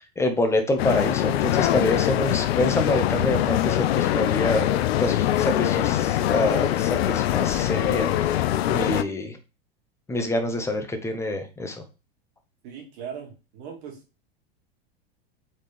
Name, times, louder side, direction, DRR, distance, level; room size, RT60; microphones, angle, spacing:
voice 1, 0.2-4.7 5.0-9.4 10.1-11.8, left 1 dB, 10° left, 5 dB, 0.9 m, -26 dB
sound 1, 0.8-9.0, left 12 dB, 80° left, 0.5 m, -23 dB
voice 2, 12.6-14.0, right 7 dB, 55° right, 0 dB, 2.2 m, -39 dB
4.3 x 3.6 x 3.4 m, 0.30 s
hypercardioid pair, 115°, 31 cm